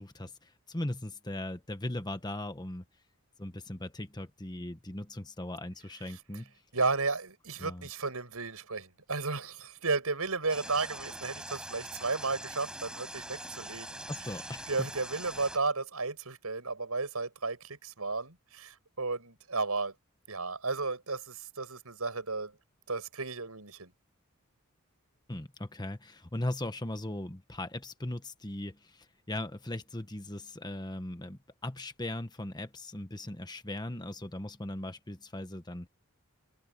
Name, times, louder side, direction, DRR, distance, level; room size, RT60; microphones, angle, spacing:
voice 1, 0.0-2.8 3.4-6.5 7.6-7.9 14.1-14.9 25.3-35.9, left 1 dB, 20° left, 1.3 m, -38 dB
voice 2, 6.7-14.0 14.7-19.9 20.3-22.5 22.9-23.9, right 3 dB, 80° right, 5.6 m, -33 dB
sound 1, 10.5-15.6, right 1 dB, 5° right, 8.0 m, -43 dB
head